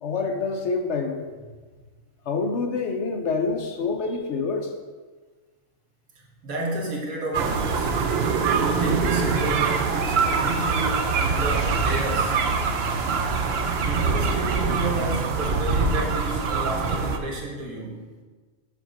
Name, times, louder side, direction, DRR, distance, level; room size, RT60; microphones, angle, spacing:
voice 1, 0.0-1.2 2.3-4.7, left 4 dB, 60° left, 4 dB, 0.9 m, -26 dB
voice 2, 6.4-7.9 8.6-12.4 13.9-18.1, right 2 dB, 80° right, -1 dB, 1.8 m, -31 dB
sound 1, 7.3-17.2, right 4 dB, 55° right, 0.8 m, -24 dB
7.2 x 3.8 x 6.2 m, 1.4 s
omnidirectional pair, 1.4 m